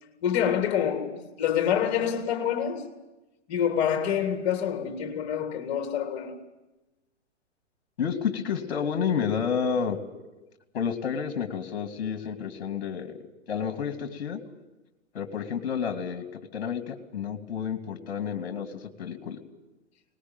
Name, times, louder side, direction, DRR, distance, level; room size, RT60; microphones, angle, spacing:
voice 1, 0.2-2.9 3.5-6.4, left 9 dB, 35° left, 3.5 m, -27 dB
voice 2, 8.0-10.0 10.7-13.1 13.5-14.4 15.1-19.4, left 7 dB, 50° left, 2.8 m, -30 dB
21.0 x 20.0 x 9.0 m
figure-of-eight pair, 115°, 36 cm